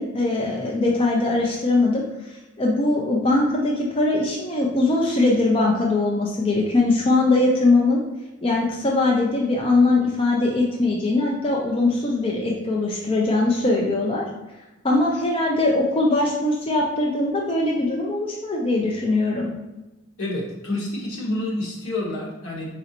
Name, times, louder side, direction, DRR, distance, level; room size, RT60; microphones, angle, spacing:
voice 1, 0.0-8.0 8.4-14.2 14.8-19.5, left 2 dB, 25° left, -2 dB, 0.5 m, -21 dB
voice 2, 20.2-22.8, left 1 dB, 75° left, -3 dB, 1.2 m, -28 dB
4.2 x 3.8 x 2.9 m, 1.1 s
head